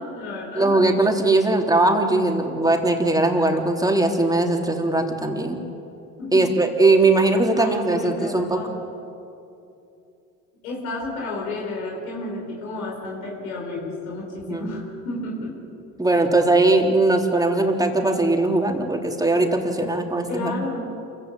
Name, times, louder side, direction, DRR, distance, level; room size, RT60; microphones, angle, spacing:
voice 1, 0.0-0.8 6.2-6.5 7.0-7.1 7.5-8.7 10.6-15.6 20.3-20.9, left 2 dB, 85° left, -2 dB, 4.9 m, -32 dB
voice 2, 0.5-5.6 6.3-8.6 14.4-14.7 16.0-20.5, right 2 dB, 10° right, 2 dB, 3.7 m, -20 dB
27.5 x 16.0 x 8.5 m, 2.7 s
hypercardioid pair, 70°, 41 cm